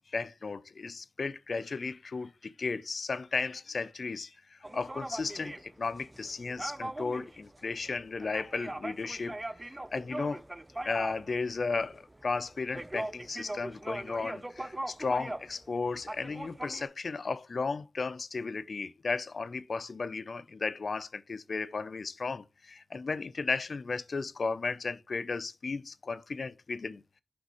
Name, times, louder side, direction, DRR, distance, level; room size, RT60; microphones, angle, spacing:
voice 1, 0.1-9.4 9.6-10.4 10.8-27.0, left 4 dB, 70° left, 0.5 m, -35 dB
sound 1, 4.6-15.6 16.0-16.8, right 1 dB, 25° right, 0.5 m, -40 dB
8.1 x 5.1 x 3.0 m
cardioid pair, 50°, 0 cm